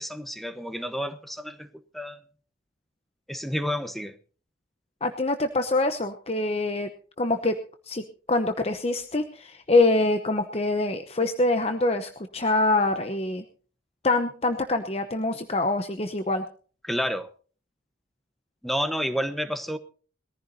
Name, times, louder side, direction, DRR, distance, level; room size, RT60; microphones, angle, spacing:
voice 1, 0.0-2.2 3.3-4.1 16.8-17.3 18.6-19.8, equal, ahead, 10 dB, 1.0 m, -30 dB
voice 2, 5.0-6.9 7.2-7.6 7.9-13.4 14.0-16.4, left 2 dB, 30° left, 7 dB, 0.9 m, -25 dB
21.5 x 15.0 x 2.7 m, 0.41 s
head